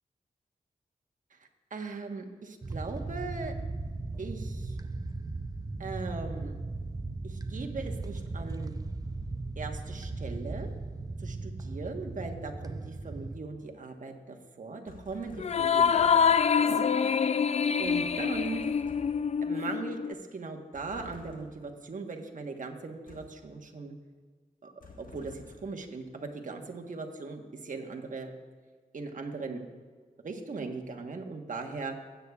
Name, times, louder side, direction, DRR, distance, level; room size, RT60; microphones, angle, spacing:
voice 1, 1.4-3.5 4.2-4.8 5.8-6.6 7.2-8.7 9.6-10.7 11.2-16.1 16.6-16.9 17.8-18.7 19.4-23.9 24.6-24.7 25.0-28.3 28.9-29.6 30.2-32.0, right 3 dB, 60° right, 3 dB, 1.2 m, -39 dB
sound 1, 2.6-13.4, right 3 dB, 25° right, 0.6 m, -37 dB
sound 2, 14.9-16.6 17.8-19.4 20.7-21.7 23.1-23.5 24.8-25.8, left 3 dB, 70° left, 1.4 m, -51 dB
sound 3, 15.4-20.1, left 7 dB, 45° left, 0.4 m, -26 dB
17.0 x 8.2 x 2.4 m, 1.5 s
cardioid pair, 50°, 15 cm